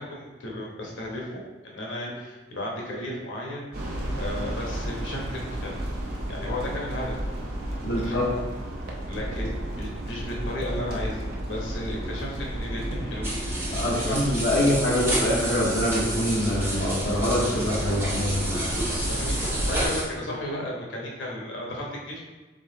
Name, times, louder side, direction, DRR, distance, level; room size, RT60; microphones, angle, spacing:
voice 1, 0.0-3.6 4.2-5.8 6.1-7.3 7.9-8.4 9.1-13.3 13.9-14.4 18.8-22.2, left 1 dB, 85° left, -2 dB, 1.1 m, -34 dB
sound 1, 3.7-19.9, right 1 dB, 55° right, 0.7 m, -32 dB
voice 2, 7.8-8.3 9.4-9.5 13.7-18.7, left 1 dB, 65° left, -5 dB, 0.8 m, -25 dB
sound 2, 13.2-20.0, right 1 dB, 15° right, 1.3 m, -31 dB
3.9 x 3.5 x 3.9 m, 1.2 s
head